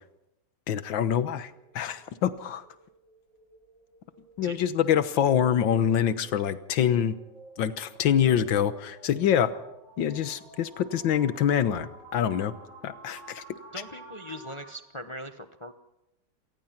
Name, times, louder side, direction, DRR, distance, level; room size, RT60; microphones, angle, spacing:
voice 1, 0.7-1.5 1.8-2.6 4.4-7.2 7.6-9.5 10.0-12.5 12.8-13.4, left 9 dB, 65° left, 12 dB, 1.7 m, -25 dB
sound 1, 1.5-14.8, right 2 dB, 35° right, 5.3 m, -51 dB
voice 2, 13.7-15.7, equal, 50° left, 7 dB, 0.3 m, -40 dB
27.0 x 18.5 x 5.9 m, 0.88 s
omnidirectional pair, 2.3 m